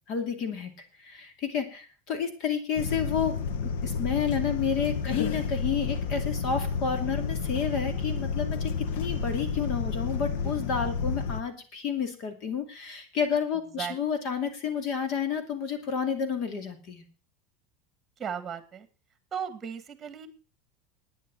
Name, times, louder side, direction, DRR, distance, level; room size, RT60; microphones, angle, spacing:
voice 1, 0.1-0.7 1.0-17.0, left 7 dB, 50° left, 8 dB, 2.5 m, -30 dB
sound 1, 2.8-11.4, left 5 dB, 85° left, 1.1 m, -30 dB
voice 2, 18.2-18.9 19.3-20.3, right 7 dB, 20° right, 11 dB, 1.7 m, -35 dB
11.0 x 9.7 x 6.8 m, 0.36 s
supercardioid pair, 150°, 0 cm